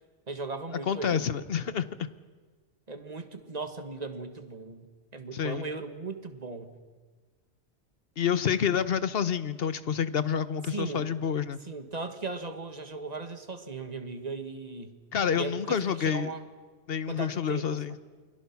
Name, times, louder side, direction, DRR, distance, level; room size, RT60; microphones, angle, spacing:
voice 1, 0.3-1.3 2.9-4.9 5.1-6.7 10.7-11.1 11.6-14.9 15.3-16.5 17.1-17.8, right 3 dB, 40° right, 7 dB, 1.7 m, -37 dB
voice 2, 0.9-2.1 5.3-5.7 8.2-11.6 15.1-16.3 16.9-18.0, left 7 dB, 65° left, 13 dB, 1.1 m, -28 dB
29.0 x 22.5 x 5.9 m, 1.4 s
omnidirectional pair, 1.1 m